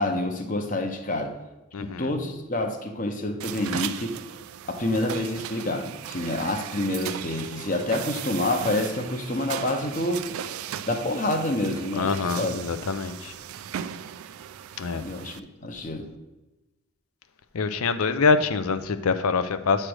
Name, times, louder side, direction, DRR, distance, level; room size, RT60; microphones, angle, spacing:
voice 1, 0.0-1.3 1.8-4.2 4.7-10.3 10.9-12.6 15.0-16.1, left 1 dB, 35° left, 4 dB, 0.8 m, -28 dB
voice 2, 1.7-2.1 11.9-13.3 14.8-15.0 17.5-19.9, left 4 dB, 90° left, 11 dB, 0.5 m, -25 dB
sound 1, 3.4-15.4, right 9 dB, 80° right, 0.3 m, -37 dB
8.7 x 3.3 x 6.2 m, 1.1 s
head